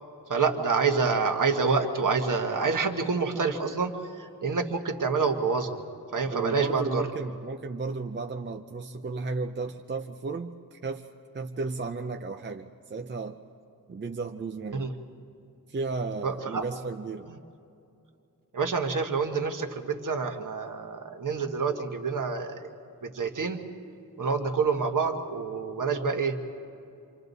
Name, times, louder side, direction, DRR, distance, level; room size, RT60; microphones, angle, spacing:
voice 1, 0.3-3.9 4.2-5.8 6.1-7.0 14.7-14.9 16.2-16.6 17.3-17.4 18.5-22.7 23.0-23.6 24.2-26.4, right 4 dB, 55° right, 4 dB, 1.4 m, -27 dB
voice 2, 6.3-11.1 11.3-13.4 13.9-14.9 15.7-17.3, right 3 dB, 30° right, 4 dB, 0.5 m, -34 dB
28.0 x 26.0 x 4.1 m, 2.7 s
wide cardioid pair, 160°, 37 cm